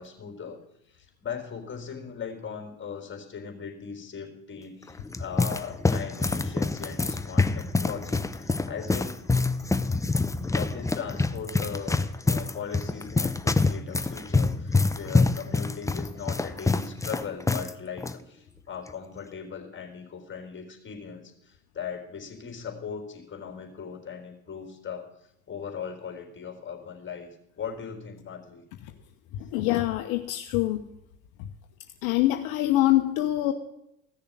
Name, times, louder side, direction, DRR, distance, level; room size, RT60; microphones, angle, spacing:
voice 1, 0.0-9.2 10.5-28.6, left 6 dB, 30° left, 3 dB, 3.8 m, -39 dB
sound 1, 4.8-17.7 18.0-18.1 18.9-19.2, left 3 dB, 10° left, 0.7 m, -26 dB
voice 2, 29.3-30.8 32.0-33.5, left 15 dB, 65° left, 6 dB, 1.0 m, -24 dB
15.5 x 6.7 x 8.8 m, 0.83 s
hypercardioid pair, 75°, 39 cm